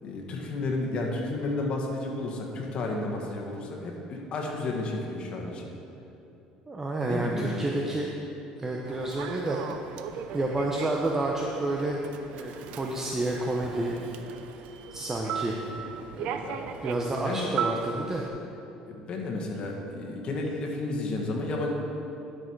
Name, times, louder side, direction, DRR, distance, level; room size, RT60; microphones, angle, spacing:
voice 1, 0.0-5.7 7.0-7.7 16.4-16.6 17.2-17.5 18.8-21.7, left 2 dB, 45° left, 0 dB, 1.7 m, -32 dB
voice 2, 6.7-8.1 8.6-9.6 10.3-12.0 12.3-14.0 14.9-15.6 16.1-16.4 16.8-18.2, right 2 dB, 20° right, -1 dB, 0.9 m, -29 dB
Human voice / Subway metro underground, 8.8-18.3, right 7 dB, 70° right, 0.6 m, -38 dB
11.5 x 6.4 x 4.7 m, 2.8 s
supercardioid pair, 100°, 2 cm